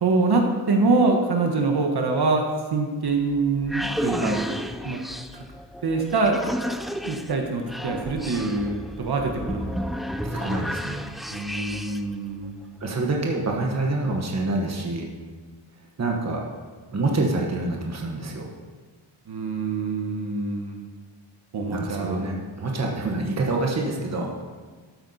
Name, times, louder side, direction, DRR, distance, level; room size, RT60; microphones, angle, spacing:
voice 1, 0.0-4.4 4.8-5.0 5.3-5.4 5.8-6.4 7.0-9.7 11.3-12.5 19.3-20.9 21.5-22.2, right 3 dB, 60° right, 2 dB, 1.4 m, -24 dB
sound 1, 3.3-12.1, equal, ahead, 0.3 m, -32 dB
voice 2, 10.2-11.0 12.8-15.1 16.0-16.4 16.9-18.5 21.7-24.5, right 2 dB, 35° right, 0 dB, 1.3 m, -26 dB
13.0 x 8.6 x 4.3 m, 1.5 s
wide cardioid pair, 180°, 44 cm